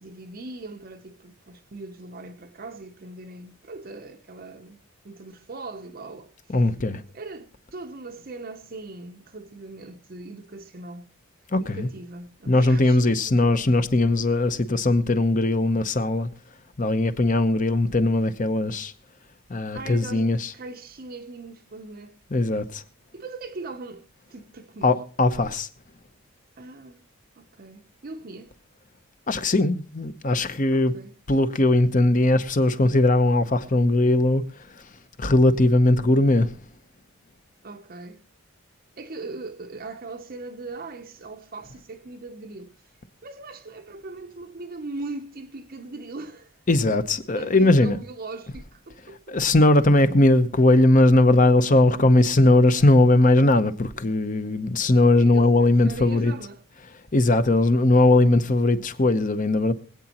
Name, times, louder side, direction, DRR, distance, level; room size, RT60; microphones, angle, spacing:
voice 1, 0.0-6.3 7.1-11.1 11.6-13.0 13.5-13.6 19.7-22.2 23.1-25.0 26.6-27.0 27.4-28.6 30.7-31.1 37.6-38.2 39.0-42.7 43.2-46.6 47.3-49.4 55.2-56.6, right 3 dB, 40° right, 0.6 m, -40 dB
voice 2, 6.5-7.0 11.5-11.9 12.5-16.3 16.8-18.9 19.5-20.5 22.3-22.8 24.8-25.7 29.3-30.9 31.3-34.4 34.7-34.8 35.2-36.5 46.7-48.0 49.3-56.3 57.1-59.7, left 2 dB, 35° left, 0.8 m, -19 dB
24.0 x 8.7 x 2.9 m
head